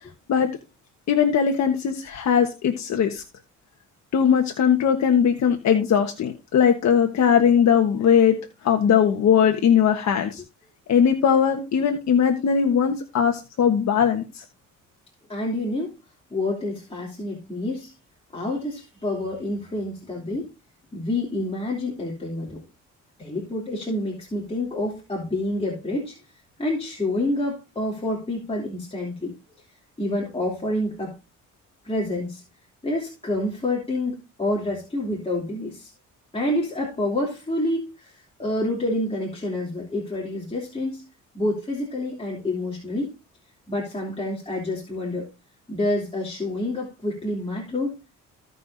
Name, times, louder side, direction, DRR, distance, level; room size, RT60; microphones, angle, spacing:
voice 1, 1.1-3.2 4.1-8.4 8.6-10.4 10.9-14.4, left 7 dB, 65° left, 4 dB, 1.3 m, -20 dB
voice 2, 15.3-15.9 16.3-17.9 18.3-20.5 20.9-22.6 23.2-26.2 26.6-29.3 30.0-31.2 31.8-32.4 32.8-35.9 36.3-41.1 41.3-43.1 43.7-45.3 45.7-48.0, left 1 dB, 20° left, -4 dB, 3.0 m, -28 dB
16.0 x 5.5 x 2.7 m, 0.28 s
cardioid pair, 90°, 30 cm